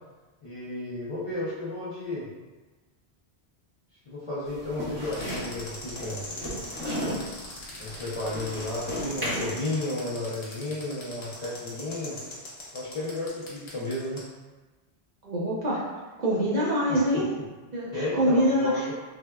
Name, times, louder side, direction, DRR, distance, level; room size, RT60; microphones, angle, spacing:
voice 1, 0.4-2.3 4.1-6.2 7.8-12.2 12.7-14.2 16.9-17.4 17.9-18.9, left 2 dB, 45° left, -10 dB, 0.4 m, -33 dB
sound 1, 4.4-9.5, equal, 25° right, 0.9 m, -35 dB
sound 2, 5.1-14.2, left 2 dB, 80° left, 1.0 m, -41 dB
voice 2, 15.2-15.8 16.2-17.2 17.7-18.8, equal, 50° right, -7 dB, 0.6 m, -25 dB
3.5 x 2.1 x 2.2 m, 1.2 s
omnidirectional pair, 1.1 m